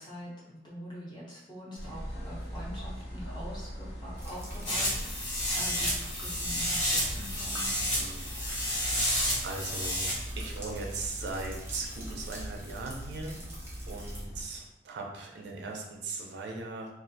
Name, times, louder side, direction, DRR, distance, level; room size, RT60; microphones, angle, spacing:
voice 1, 0.0-7.7, equal, 25° left, -6 dB, 0.7 m, -44 dB
sound 1, 1.8-14.5, equal, 65° left, 0.7 m, -41 dB
sound 2, 4.2-14.2, right 1 dB, 15° right, 0.6 m, -48 dB
sound 3, 4.6-10.1, equal, 85° left, 1.0 m, -31 dB
voice 2, 7.9-13.4 13.9-16.9, right 3 dB, 70° right, 1 dB, 0.4 m, -39 dB
2.3 x 2.1 x 2.6 m, 0.91 s
head